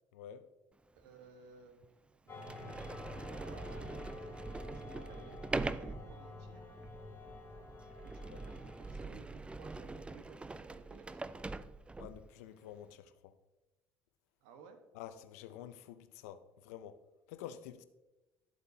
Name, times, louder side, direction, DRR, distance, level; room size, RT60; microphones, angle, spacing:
voice 1, 0.1-0.5 8.3-8.4 12.0-13.3 14.9-17.0 17.3-17.8, left 10 dB, 85° left, 0.6 m, -49 dB
voice 2, 0.9-1.8 2.2-4.4 4.7-6.6 8.0-11.6 14.4-14.8, right 5 dB, 80° right, 1.2 m, -58 dB
Sliding door, 1.0-1.1 1.8-1.9 2.4-12.3, right 3 dB, 15° right, 0.4 m, -43 dB
sound 1, 2.3-9.3, left 2 dB, 25° left, 2.9 m, -49 dB
12.5 x 8.0 x 2.8 m
supercardioid pair, 75°, 8 cm